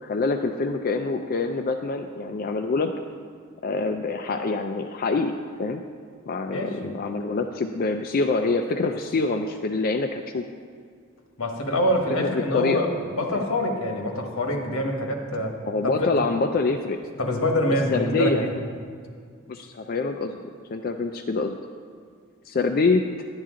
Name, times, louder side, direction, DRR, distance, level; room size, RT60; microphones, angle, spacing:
voice 1, 0.0-2.9 3.6-5.3 5.6-5.8 6.3-10.5 12.2-12.8 13.3-13.5 15.7-17.0 17.9-18.4 19.5-20.4 20.7-21.6 22.4-23.0, left 3 dB, 45° left, 5 dB, 0.4 m, -25 dB
voice 2, 6.5-6.9 11.4-15.6 16.2-16.3 17.2-18.5, left 1 dB, 80° left, 2 dB, 1.3 m, -25 dB
10.5 x 10.0 x 3.7 m, 2.1 s
head